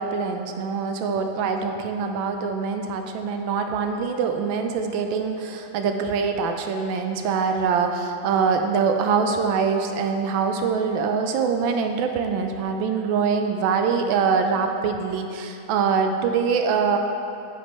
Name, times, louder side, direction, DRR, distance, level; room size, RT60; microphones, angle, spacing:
voice 1, 0.0-17.0, right 5 dB, 75° right, 5 dB, 1.3 m, -24 dB
9.2 x 7.2 x 3.1 m, 2.6 s
omnidirectional pair, 2.2 m